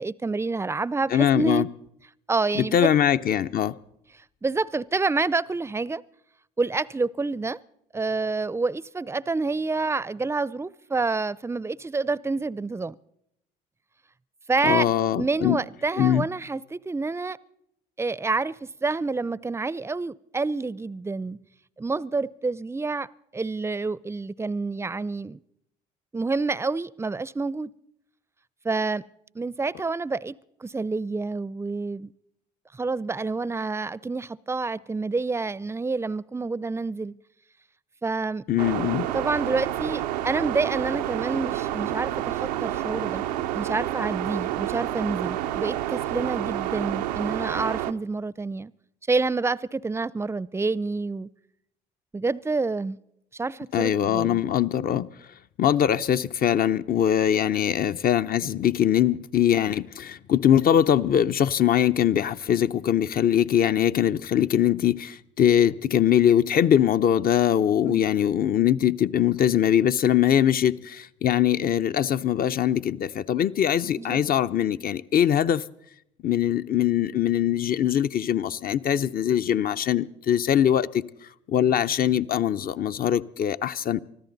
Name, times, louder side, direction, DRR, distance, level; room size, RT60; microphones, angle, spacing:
voice 1, 0.0-1.7 2.3-2.9 4.4-6.0 6.6-7.6 7.9-13.0 14.5-14.9 15.2-17.4 18.0-21.4 21.8-23.1 23.3-25.4 26.1-27.7 28.6-29.0 29.3-30.3 30.6-32.1 32.7-37.2 38.0-38.4 39.1-43.2 43.5-48.7 49.1-51.3 52.1-53.0 53.3-54.4 67.8-68.0 74.0-74.2, right 3 dB, 15° right, 0.5 m, -28 dB
voice 2, 1.1-1.7 2.5-3.8 14.6-15.6 16.0-16.2 38.5-39.1 53.7-55.1 55.6-75.6 76.2-81.0 81.5-84.0, left 10 dB, 45° left, 0.7 m, -22 dB
sound 1, 38.6-47.9, right 13 dB, 90° right, 0.5 m, -29 dB
24.5 x 14.0 x 4.0 m
hypercardioid pair, 60°, 20 cm